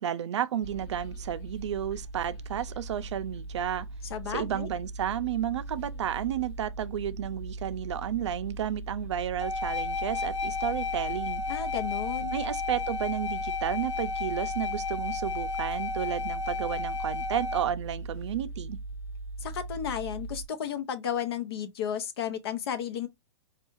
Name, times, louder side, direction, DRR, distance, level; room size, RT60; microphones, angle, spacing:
voice 1, 0.0-3.9 4.3-11.4 12.3-18.8, right 10 dB, 70° right, 0.5 m, -32 dB
sound 1, 0.6-20.5, right 2 dB, 30° left, 1.0 m, -39 dB
voice 2, 4.1-4.7 11.5-12.3 19.4-23.1, left 9 dB, 55° left, 0.7 m, -33 dB
sound 2, 9.4-17.7, left 4 dB, 75° left, 0.9 m, -33 dB
4.4 x 2.3 x 2.9 m
hypercardioid pair, 165°, 16 cm